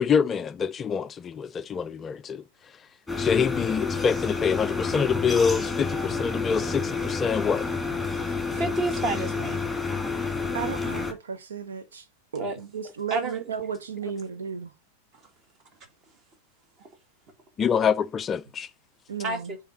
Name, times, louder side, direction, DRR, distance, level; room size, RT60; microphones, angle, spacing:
voice 1, 0.0-2.4 3.2-7.7 17.6-18.7, left 6 dB, 25° left, 0.3 m, -25 dB
sound 1, 3.1-11.1, left 4 dB, ahead, 2.1 m, -29 dB
voice 2, 8.3-9.6 12.4-12.6 13.1-13.4 19.2-19.6, right 2 dB, 30° right, 2.1 m, -30 dB
voice 3, 10.5-12.0 12.3-14.7 19.1-19.4, right 7 dB, 65° right, 1.0 m, -34 dB
6.9 x 4.4 x 3.6 m
figure-of-eight pair, 90°, 0 cm